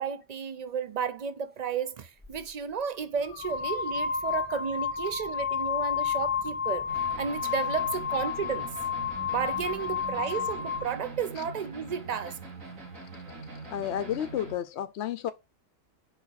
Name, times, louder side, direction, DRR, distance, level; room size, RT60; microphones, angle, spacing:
voice 1, 0.0-6.9 7.2-8.7 9.3-12.4, right 6 dB, 55° right, 0.4 m, -32 dB
sound 1, 2.2-2.4 3.2-10.9, left 7 dB, 10° left, 1.3 m, -31 dB
sound 2, 6.9-14.5, right 3 dB, 80° right, 2.2 m, -43 dB
voice 2, 13.7-15.3, left 10 dB, 65° left, 0.8 m, -31 dB
5.2 x 4.8 x 4.0 m
omnidirectional pair, 1.4 m